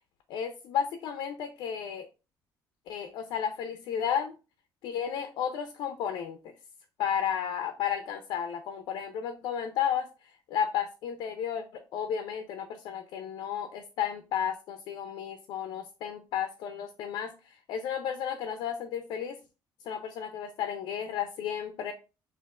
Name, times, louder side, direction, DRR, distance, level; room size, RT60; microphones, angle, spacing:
voice 1, 0.3-2.1 2.9-4.3 4.8-6.4 7.0-10.1 10.5-19.4 19.8-21.9, left 8 dB, 70° left, 7 dB, 0.4 m, -33 dB
5.7 x 2.5 x 2.4 m, 0.31 s
cardioid pair, 175°, 8 cm